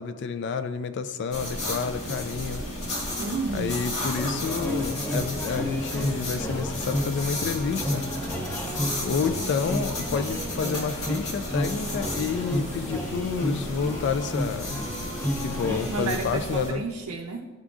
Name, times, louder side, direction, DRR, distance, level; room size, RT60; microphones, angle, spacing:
voice 1, 0.0-2.7 3.5-8.1 9.0-15.2 15.4-16.8, left 5 dB, 50° left, 10 dB, 0.3 m, -29 dB
sound 1, 1.3-16.7, left 1 dB, 65° left, 1.5 m, -33 dB
voice 2, 3.2-3.9 15.7-17.5, right 3 dB, 85° right, 0 dB, 0.5 m, -32 dB
sound 2, 4.2-16.1, equal, 10° left, 0.8 m, -32 dB
11.0 x 3.7 x 2.4 m, 1.3 s
head